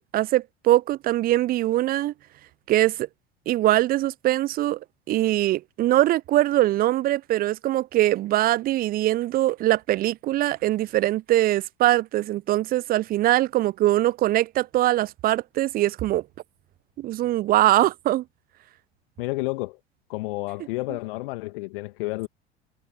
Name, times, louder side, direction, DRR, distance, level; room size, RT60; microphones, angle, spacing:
voice 1, 0.1-2.1 2.7-3.1 3.5-4.8 5.1-16.2 17.0-18.2, right 15 dB, 30° right, 0.5 m, -22 dB
voice 2, 19.2-19.8 20.1-22.3, left 22 dB, 55° left, 2.3 m, -30 dB
figure-of-eight pair, 75°, 32 cm